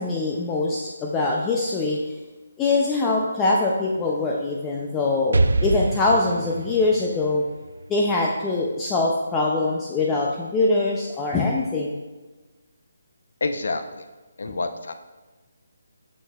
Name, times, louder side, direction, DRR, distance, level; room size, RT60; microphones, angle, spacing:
voice 1, 0.0-2.0 2.6-7.4 7.9-12.0, left 3 dB, 10° left, -2 dB, 0.4 m, -23 dB
Explosion, 5.3-9.1, right 3 dB, 75° right, 0.3 m, -26 dB
voice 2, 13.4-14.0 14.4-14.9, left 3 dB, 65° left, 8 dB, 0.6 m, -28 dB
7.3 x 6.4 x 2.3 m, 1.2 s
hypercardioid pair, 165°, 0 cm